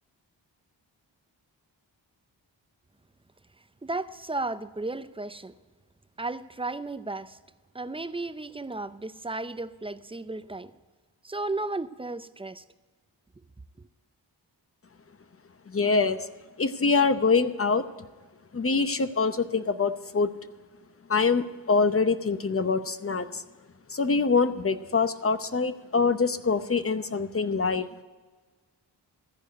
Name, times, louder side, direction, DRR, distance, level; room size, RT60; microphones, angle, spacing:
voice 1, 3.8-5.5 6.2-7.4 7.7-10.7 11.2-12.6, right 2 dB, 10° right, 0.5 m, -34 dB
voice 2, 15.7-16.3 16.6-17.8 18.5-20.3 21.1-23.4 23.9-27.9, left 4 dB, 30° left, 0.7 m, -24 dB
14.5 x 4.9 x 9.1 m
cardioid pair, 50°, 45 cm